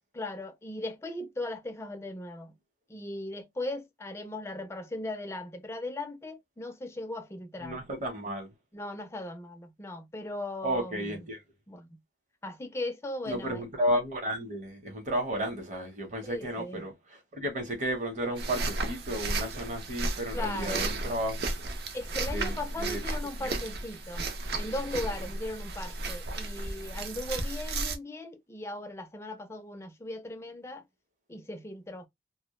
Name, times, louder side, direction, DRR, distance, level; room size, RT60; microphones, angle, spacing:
voice 1, 0.1-2.5 2.9-7.8 8.7-11.2 11.7-12.0 12.4-13.6 16.2-16.9 20.3-20.8 21.9-24.3 24.5-30.8 31.3-32.1, left 2 dB, 15° left, 0.3 m, -38 dB
voice 2, 7.6-8.5 10.6-11.4 13.3-21.6 22.3-23.0 23.4-23.6, equal, 40° right, 0.8 m, -33 dB
sound 1, 18.4-28.0, right 2 dB, 60° right, 0.5 m, -34 dB
2.1 x 2.0 x 2.9 m
head